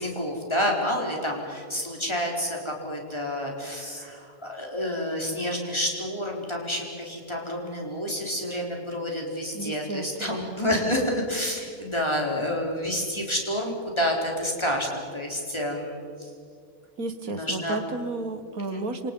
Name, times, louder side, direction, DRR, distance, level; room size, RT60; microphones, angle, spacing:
voice 1, 0.0-16.0 17.2-17.8 18.7-18.8, equal, 20° left, 0 dB, 4.3 m, -29 dB
voice 2, 9.5-10.5 17.0-19.1, right 3 dB, 85° right, 9 dB, 2.0 m, -32 dB
28.0 x 26.5 x 5.5 m, 2.3 s
omnidirectional pair, 1.5 m